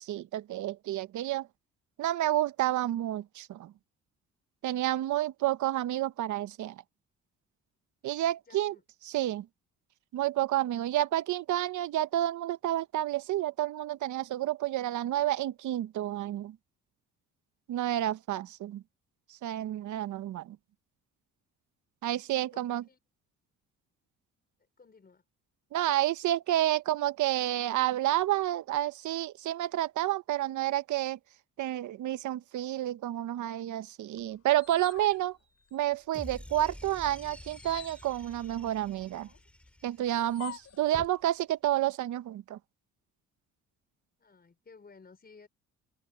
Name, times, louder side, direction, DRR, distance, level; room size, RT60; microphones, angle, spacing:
voice 1, 0.0-1.5 2.0-3.7 4.6-6.8 8.0-8.7 9.1-9.5 10.1-16.6 17.7-18.8 19.3-20.6 22.0-22.8 25.7-31.2 31.6-35.4 35.7-39.3 39.8-42.6, right 13 dB, 75° right, 1.0 m, -30 dB
voice 2, 8.5-8.8 22.2-23.0 24.8-25.2 44.2-45.5, left 4 dB, 30° left, 5.1 m, -56 dB
sound 1, 34.2-36.2 36.6-41.2, left 9 dB, 55° left, 3.7 m, -48 dB
sound 2, 36.1-40.5, left 1 dB, 5° left, 2.8 m, -48 dB
cardioid pair, 90°, 30 cm